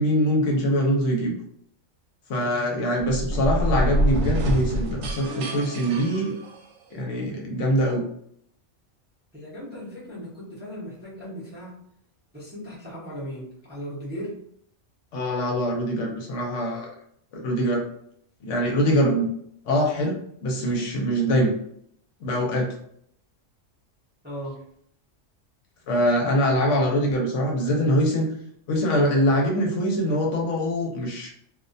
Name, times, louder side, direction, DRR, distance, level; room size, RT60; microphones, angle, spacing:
voice 1, 0.0-1.3 2.3-6.3 6.9-8.0 15.1-16.9 17.3-17.8 18.4-19.3 19.7-21.5 22.2-22.7 25.9-28.3 28.7-31.3, equal, 70° left, 0 dB, 0.9 m, -23 dB
sound 1, 2.9-7.0, equal, 85° right, 1.0 m, -26 dB
voice 2, 9.3-11.8 12.3-14.4 24.2-24.6, equal, 10° right, -9 dB, 0.6 m, -37 dB
2.4 x 2.1 x 2.5 m, 0.68 s
omnidirectional pair, 1.3 m